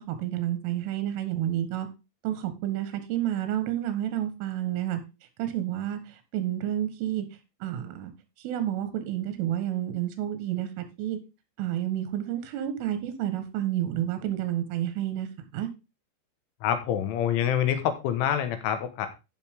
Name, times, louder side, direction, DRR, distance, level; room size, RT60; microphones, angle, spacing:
voice 1, 0.0-1.9 2.2-5.0 5.4-7.3 7.6-8.1 8.4-11.2 11.6-15.3 15.5-15.7, right 12 dB, 85° right, 4.0 m, -30 dB
voice 2, 16.6-19.1, left 9 dB, 75° left, 3.8 m, -26 dB
15.0 x 5.5 x 3.6 m
omnidirectional pair, 5.7 m